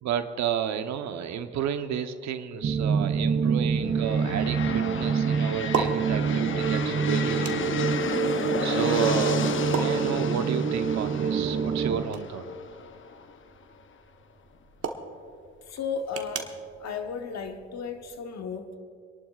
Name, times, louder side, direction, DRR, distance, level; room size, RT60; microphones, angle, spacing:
voice 1, 0.0-7.9 8.6-9.4 9.7-12.4, right 8 dB, 70° right, 1.0 m, -31 dB
sound 1, 2.6-12.0, right 6 dB, 35° right, 0.7 m, -26 dB
sound 2, 3.0-18.2, right 5 dB, 55° right, 1.3 m, -40 dB
sound 3, 3.9-13.7, left 6 dB, 40° left, 0.8 m, -33 dB
voice 2, 15.7-16.5 16.8-18.8, left 5 dB, 60° left, 1.2 m, -34 dB
30.0 x 11.5 x 2.5 m
supercardioid pair, 65°, 30 cm